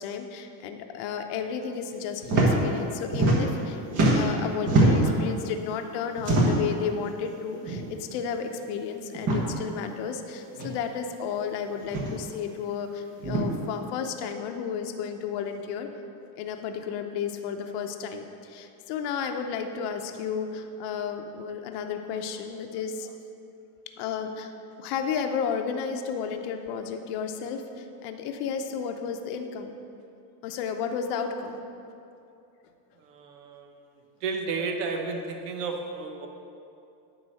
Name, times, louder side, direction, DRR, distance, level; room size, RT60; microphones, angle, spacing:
voice 1, 0.0-3.8 4.1-15.9 16.4-23.1 24.0-24.5 24.8-29.7 30.4-31.5, left 6 dB, 60° left, 5 dB, 0.8 m, -32 dB
sound 1, 2.2-2.5 2.8-3.6 3.9-5.2 6.2-6.7 7.6-7.8 8.1-8.2 9.1-9.4 10.6-10.7 11.8-12.1 13.2-13.5, right 2 dB, 40° right, 1.6 m, -23 dB
voice 2, 33.0-33.8 34.2-36.3, right 4 dB, 85° right, 4 dB, 1.2 m, -32 dB
9.4 x 4.0 x 6.4 m, 2.7 s
supercardioid pair, 135°, 46 cm